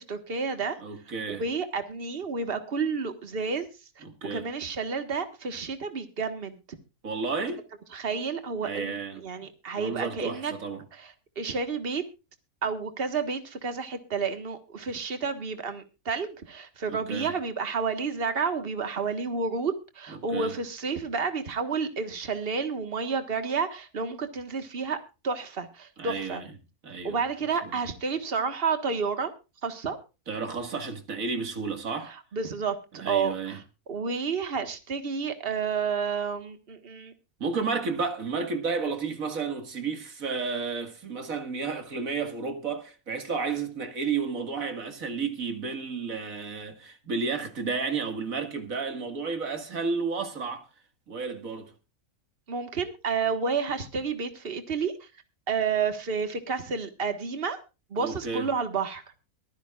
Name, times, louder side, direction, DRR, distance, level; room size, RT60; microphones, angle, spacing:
voice 1, 0.0-0.8 1.3-3.7 4.3-6.6 7.9-10.5 11.0-11.1 11.4-12.0 12.6-25.0 25.2-26.4 27.0-29.3 29.6-30.0 32.3-33.6 33.9-37.1 52.5-55.1 55.5-57.6 57.9-59.0, right 5 dB, 40° right, 1.7 m, -30 dB
voice 2, 0.8-1.5 4.0-4.5 7.0-7.6 8.6-9.2 9.7-10.8 16.9-17.3 20.1-20.6 26.0-26.5 26.8-27.2 27.6-27.8 30.3-32.1 32.9-33.6 37.4-50.6 51.1-51.7 58.0-58.5, right 5 dB, 60° right, 2.3 m, -32 dB
23.5 x 10.0 x 2.4 m
omnidirectional pair, 1.6 m